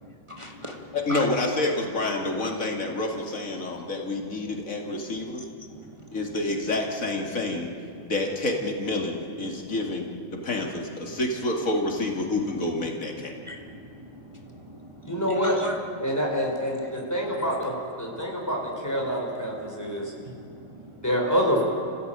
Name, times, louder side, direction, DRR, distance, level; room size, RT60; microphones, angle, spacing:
voice 1, 0.0-1.2 5.6-6.2 10.3-10.4 11.1-11.2 13.2-16.2 16.7-17.7 18.1-18.5 19.0-19.1 19.6-21.2, equal, 25° right, 0 dB, 1.8 m, -42 dB
voice 2, 0.9-5.4 6.1-7.7 8.0-13.3, left 2 dB, 85° left, 1 dB, 2.7 m, -28 dB
voice 3, 15.0-15.6 16.0-20.0 21.0-21.6, equal, 15° left, -1 dB, 4.6 m, -26 dB
30.0 x 15.5 x 8.9 m, 2.6 s
omnidirectional pair, 1.4 m